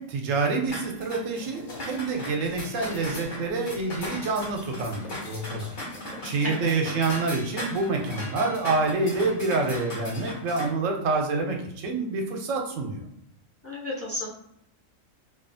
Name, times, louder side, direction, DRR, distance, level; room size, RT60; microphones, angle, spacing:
voice 1, 0.0-5.8 6.2-13.0, right 3 dB, 80° right, 2 dB, 1.0 m, -27 dB
sound 1, 0.7-10.7, left 1 dB, 45° left, 0.7 m, -38 dB
voice 2, 13.6-14.2, left 1 dB, 20° left, -5 dB, 0.4 m, -32 dB
2.4 x 2.4 x 2.6 m, 0.77 s
omnidirectional pair, 1.4 m